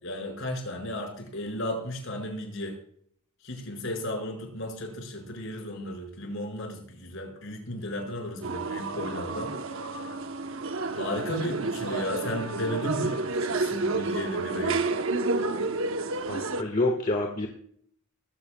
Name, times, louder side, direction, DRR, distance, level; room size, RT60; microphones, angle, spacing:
voice 1, 0.0-2.8 3.4-10.2 10.9-14.8, left 1 dB, 60° left, 2 dB, 5.4 m, -34 dB
sound 1, 8.4-16.6, right 3 dB, 65° right, 0.9 m, -30 dB
voice 2, 16.3-17.5, left 2 dB, 35° left, 2 dB, 1.5 m, -27 dB
20.0 x 15.0 x 2.3 m, 0.63 s
head